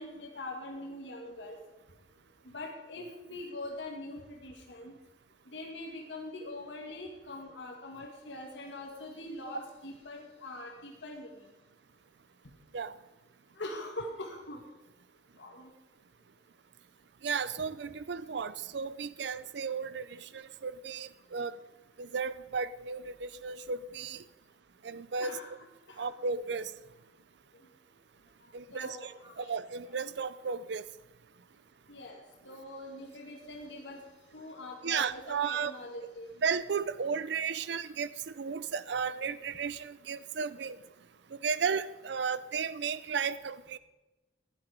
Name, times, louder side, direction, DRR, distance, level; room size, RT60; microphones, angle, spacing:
voice 1, 0.0-1.6 2.5-4.9 5.5-11.3 13.6-14.6 15.4-15.7 25.2-25.5 25.9-26.1 28.7-29.5 31.9-32.2 32.4-34.0 34.3-36.3, left 2 dB, 75° left, 0 dB, 2.3 m, -43 dB
voice 2, 17.2-21.6 22.0-24.2 24.8-25.4 26.0-26.7 28.5-30.8 34.8-35.7 36.4-40.8 41.3-43.8, right 6 dB, 65° right, 15 dB, 0.5 m, -34 dB
16.5 x 11.5 x 5.2 m, 1.1 s
head